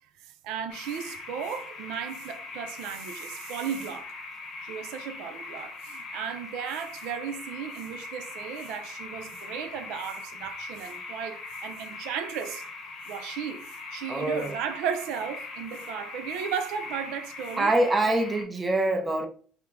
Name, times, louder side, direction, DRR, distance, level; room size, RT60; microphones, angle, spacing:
voice 1, 0.2-4.1 4.6-12.7 13.1-17.7 18.0-18.2, right 8 dB, 80° right, 0.5 m, -35 dB
sound 1, 0.7-18.4, left 3 dB, 40° left, 0.8 m, -41 dB
voice 2, 14.1-14.5 17.6-19.3, right 2 dB, 15° right, 0.6 m, -25 dB
4.4 x 2.0 x 3.6 m
cardioid pair, 165°, 0 cm